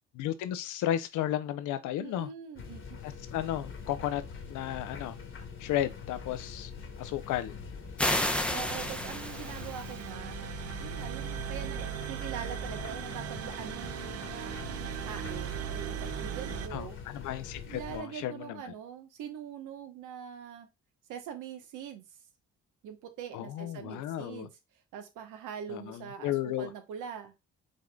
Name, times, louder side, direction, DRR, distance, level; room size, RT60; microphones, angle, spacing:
voice 1, 0.1-2.3 3.0-4.2 4.5-5.1 5.6-6.7 7.0-7.5 16.7-18.7 23.3-24.5 25.7-26.7, left 12 dB, 85° left, 0.6 m, -34 dB
voice 2, 2.0-3.0 8.5-10.4 10.8-17.0 17.7-20.7 21.1-22.2 22.8-24.5 24.9-27.3, right 8 dB, 90° right, 1.0 m, -43 dB
sound 1, 2.6-18.0, left 5 dB, 45° left, 1.3 m, -44 dB
sound 2, 8.0-10.0, left 1 dB, 5° left, 0.6 m, -31 dB
sound 3, 8.5-16.7, right 10 dB, 55° right, 0.6 m, -39 dB
5.3 x 3.8 x 2.2 m
cardioid pair, 90°, 30 cm